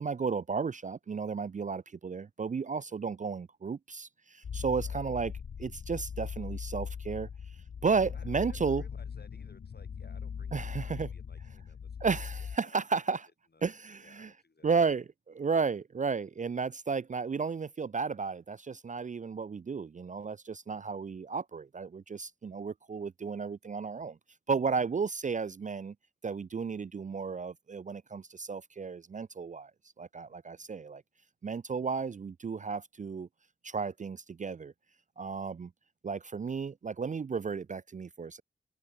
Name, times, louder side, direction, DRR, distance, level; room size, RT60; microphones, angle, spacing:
voice 1, 0.0-5.3 5.6-7.3 7.8-8.8 10.5-11.1 12.0-13.2 13.6-14.3 14.6-15.0 15.4-24.2 24.5-25.9 26.2-29.7 30.0-31.0 31.4-33.3 33.6-34.7 35.2-35.7 36.0-38.4, right 5 dB, 40° right, 0.4 m, -33 dB
sound 1, 4.4-12.6, left 7 dB, 70° left, 0.8 m, -40 dB
voice 2, 4.6-5.1 8.1-13.0 13.5-15.0 20.7-20.9 30.3-30.7, left 3 dB, 55° left, 4.9 m, -61 dB
cardioid pair, 40°, 20 cm